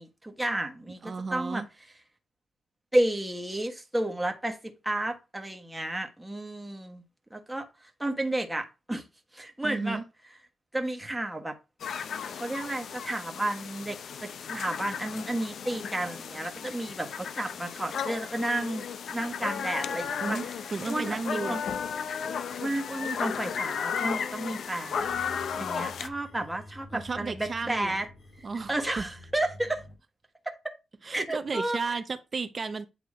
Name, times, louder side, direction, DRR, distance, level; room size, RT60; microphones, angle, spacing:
voice 1, 0.0-1.6 2.9-4.6 4.8-7.0 7.3-7.7 8.0-9.0 9.3-10.0 10.7-11.5 12.4-20.4 20.9-21.6 22.6-25.0 25.6-28.1 28.4-29.8 31.1-32.0, right 1 dB, 5° right, 1.2 m, -32 dB
voice 2, 1.0-1.7 9.6-10.0 20.2-21.6 22.3-22.6 26.9-28.0 28.4-29.1 31.0-32.9, right 4 dB, 40° right, 0.6 m, -34 dB
sound 1, 11.8-26.1, left 7 dB, 65° left, 0.5 m, -34 dB
sound 2, 24.9-30.0, left 1 dB, 40° left, 3.3 m, -49 dB
8.5 x 2.9 x 4.8 m
cardioid pair, 100°, 0 cm